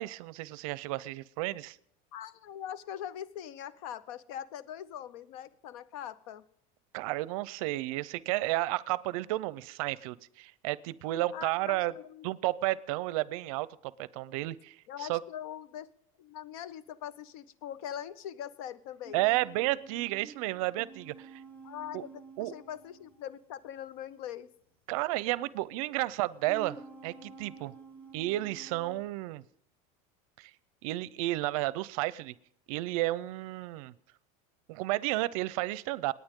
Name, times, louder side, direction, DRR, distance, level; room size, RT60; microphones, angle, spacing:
voice 1, 0.0-1.8 6.9-11.9 12.2-15.2 19.1-21.4 21.9-22.0 22.4-22.5 24.9-27.7 28.1-29.4 30.4-30.5 30.8-32.3 32.7-33.9 34.7-36.1, right 18 dB, 70° right, 19 dB, 0.6 m, -32 dB
voice 2, 2.1-6.4 11.3-12.3 14.9-15.9 16.2-19.4 21.6-24.5, left 10 dB, 70° left, 17 dB, 0.8 m, -42 dB
sound 1, 19.0-23.9 25.2-25.3 26.1-29.0, right 4 dB, 10° left, 1.4 m, -51 dB
28.5 x 9.5 x 3.7 m, 0.68 s
supercardioid pair, 160°, 19 cm